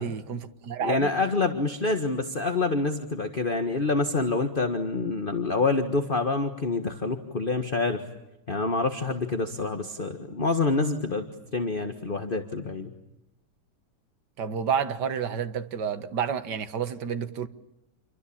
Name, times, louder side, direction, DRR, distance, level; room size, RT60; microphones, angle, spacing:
voice 1, 0.0-1.1 14.4-17.5, right 7 dB, 70° right, 2.0 m, -30 dB
voice 2, 0.8-8.0 8.5-12.9, left 3 dB, 30° left, 1.7 m, -27 dB
28.5 x 23.5 x 8.7 m
omnidirectional pair, 1.9 m